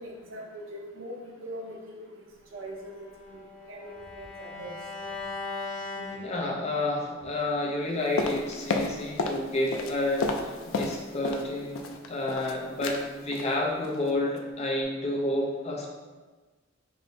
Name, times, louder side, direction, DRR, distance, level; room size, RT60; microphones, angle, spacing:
voice 1, 0.0-2.9 3.3-3.4 3.7-4.8, right 1 dB, 70° right, -1 dB, 0.8 m, -41 dB
Bowed string instrument, 2.7-6.9, left 3 dB, 55° left, 1.2 m, -39 dB
voice 2, 6.2-15.9, left 1 dB, 30° left, -1 dB, 0.6 m, -30 dB
sound 1, 8.2-9.4 9.7-11.5 11.8-12.5 12.8-13.0 13.3-13.5 13.8-14.1 14.4-14.5, left 3 dB, 80° left, 0.4 m, -31 dB
4.8 x 3.0 x 2.7 m, 1.3 s
head